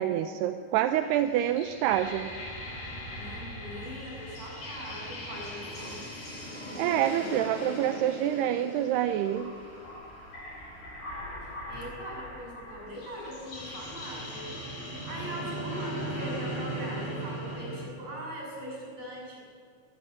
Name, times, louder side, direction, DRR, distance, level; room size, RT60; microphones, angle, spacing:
voice 1, 0.0-2.3 6.8-9.5, right 11 dB, 80° right, 8 dB, 2.7 m, -27 dB
sound 1, 1.0-17.8, equal, 60° left, 9.8 m, -39 dB
voice 2, 3.1-6.1 11.7-19.4, right 1 dB, 40° right, -2 dB, 8.6 m, -41 dB
21.0 x 20.0 x 8.5 m, 2.2 s
omnidirectional pair, 5.0 m